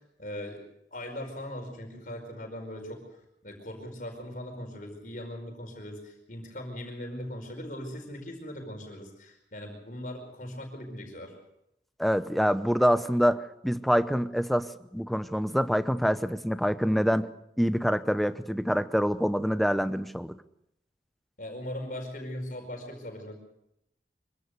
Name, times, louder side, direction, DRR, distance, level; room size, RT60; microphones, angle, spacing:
voice 1, 0.2-0.6 0.9-3.0 3.4-11.3 21.4-23.3, left 1 dB, 50° left, 3 dB, 5.1 m, -39 dB
voice 2, 12.0-17.3 17.6-20.3, equal, ahead, 12 dB, 0.7 m, -26 dB
24.5 x 17.0 x 6.7 m, 0.81 s
head